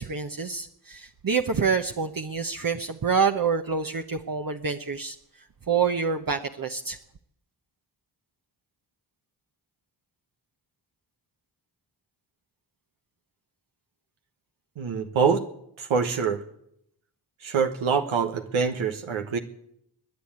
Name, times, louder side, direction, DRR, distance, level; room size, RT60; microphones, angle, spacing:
voice 1, 0.0-5.1 5.7-7.0, right 5 dB, 45° right, 5 dB, 1.1 m, -27 dB
voice 2, 14.8-15.4 15.8-16.4 17.4-19.4, right 6 dB, 85° right, 5 dB, 1.3 m, -25 dB
21.5 x 7.7 x 8.7 m, 0.75 s
cardioid pair, 40°, 47 cm